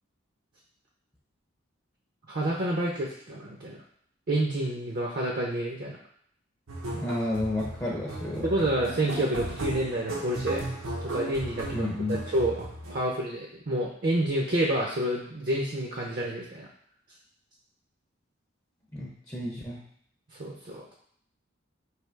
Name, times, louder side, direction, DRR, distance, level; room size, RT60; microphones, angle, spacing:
voice 1, 2.3-3.8 4.3-6.0 8.4-10.6 11.0-16.7 20.4-21.0, right 1 dB, 45° right, -2 dB, 0.6 m, -29 dB
sound 1, 6.7-13.0, right 1 dB, 85° right, 1.0 m, -36 dB
voice 2, 6.9-8.5 11.7-12.2 18.9-19.8, left 1 dB, 15° left, -3 dB, 0.5 m, -31 dB
3.4 x 2.8 x 4.5 m, 0.65 s
head